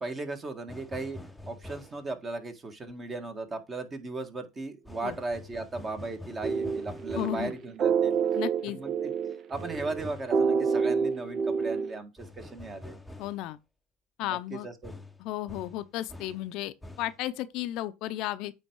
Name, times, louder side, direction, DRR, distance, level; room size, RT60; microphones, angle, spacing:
voice 1, 0.0-8.1 8.6-9.1 9.5-13.0 14.2-15.0, right 3 dB, 25° right, 1.7 m, -37 dB
sound 1, 0.7-2.1 4.8-7.5 9.5-10.4 12.2-13.5 14.8-16.5 16.8-17.2, left 1 dB, ahead, 0.9 m, -46 dB
sound 2, 6.4-12.0, right 6 dB, 40° right, 0.7 m, -28 dB
voice 2, 7.1-7.5 8.4-8.8 13.2-13.6 14.2-14.7 15.2-18.5, left 14 dB, 60° left, 0.6 m, -34 dB
8.9 x 3.5 x 4.7 m
supercardioid pair, 100°, 0 cm